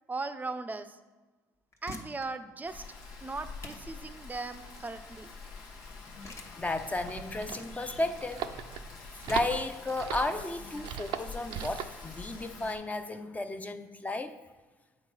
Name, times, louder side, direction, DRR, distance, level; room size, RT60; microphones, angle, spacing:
voice 1, 0.1-1.0 1.8-2.9 3.2-5.3, right 3 dB, 20° right, 11 dB, 0.6 m, -38 dB
sound 1, 1.5-12.3, left 2 dB, 35° left, 1.1 m, -51 dB
Rain, 2.7-12.8, left 4 dB, 80° left, 1.3 m, -47 dB
voice 2, 6.1-8.5 8.7-14.4, left 2 dB, 20° left, 8 dB, 0.7 m, -34 dB
sound 2, 6.9-12.0, right 9 dB, 75° right, 0.5 m, -39 dB
8.0 x 3.8 x 5.4 m, 1.2 s
supercardioid pair, 75°, 8 cm